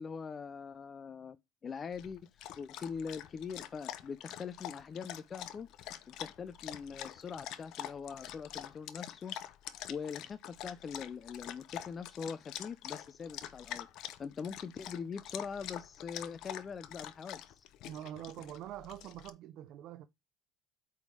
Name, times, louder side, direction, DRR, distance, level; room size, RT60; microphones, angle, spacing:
voice 1, 0.0-1.4 1.6-5.7 6.1-9.5 9.9-17.7, left 6 dB, 25° left, 0.4 m, -43 dB
Dog, 1.9-19.3, left 12 dB, 50° left, 0.7 m, -46 dB
voice 2, 17.9-20.1, right 12 dB, 45° right, 0.5 m, -45 dB
8.4 x 3.5 x 4.7 m
cardioid pair, 160°, 0 cm